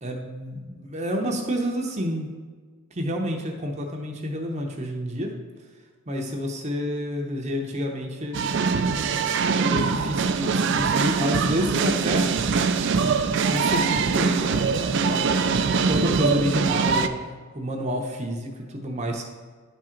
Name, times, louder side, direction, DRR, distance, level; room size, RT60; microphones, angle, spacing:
voice 1, 0.0-2.3 2.9-5.3 6.1-8.4 9.6-12.5 13.5-15.3 15.9-17.2 17.5-19.2, equal, 30° right, 1 dB, 0.7 m, -29 dB
sound 1, 8.3-17.1, right 5 dB, 55° right, 0.4 m, -23 dB
11.0 x 3.7 x 4.4 m, 1.5 s
head